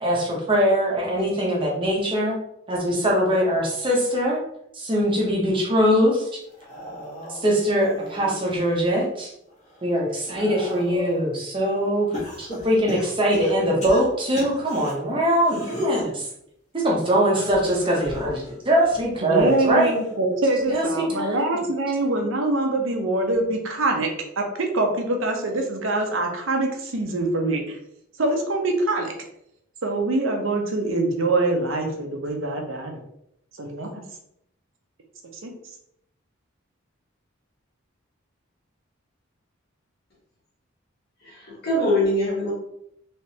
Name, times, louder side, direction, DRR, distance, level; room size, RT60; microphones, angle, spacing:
voice 1, 0.0-2.4 2.7-4.4 4.7-6.4 7.3-9.3 9.8-16.3 16.7-19.9 20.7-21.6, equal, 25° right, -2 dB, 0.7 m, -22 dB
sound 1, 6.5-8.8 9.3-11.3 12.1-14.9 15.4-16.1 17.2-20.1 20.5-20.9 22.1-22.2, left 1 dB, 35° left, 1.2 m, -36 dB
voice 2, 19.2-24.1 24.4-27.8 28.2-29.1 29.8-33.0 33.6-33.9 35.4-35.5, right 2 dB, 70° right, 3 dB, 0.7 m, -24 dB
voice 3, 41.2-42.5, left 1 dB, 50° left, -4 dB, 1.4 m, -23 dB
3.3 x 3.2 x 2.8 m, 0.74 s
head